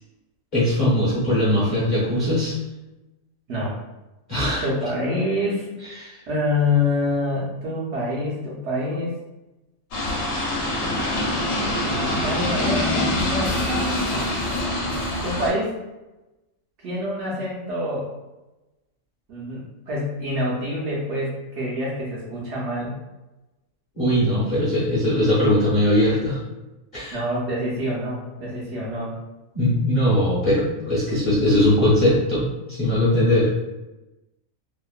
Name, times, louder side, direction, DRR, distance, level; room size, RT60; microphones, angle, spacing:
voice 1, 0.5-2.6 4.3-4.7 6.0-6.2 24.0-26.4 26.9-27.2 29.5-33.5, left 1 dB, 45° left, -10 dB, 0.7 m, -20 dB
voice 2, 3.5-3.8 4.6-5.7 6.3-9.1 12.0-13.6 14.7-14.9 15.2-15.8 16.8-18.1 19.3-23.0 27.1-29.2, left 1 dB, 60° right, -5 dB, 0.9 m, -26 dB
sound 1, 9.9-15.5, left 1 dB, 70° left, 1.0 m, -24 dB
2.8 x 2.0 x 2.3 m, 1.0 s
omnidirectional pair, 1.5 m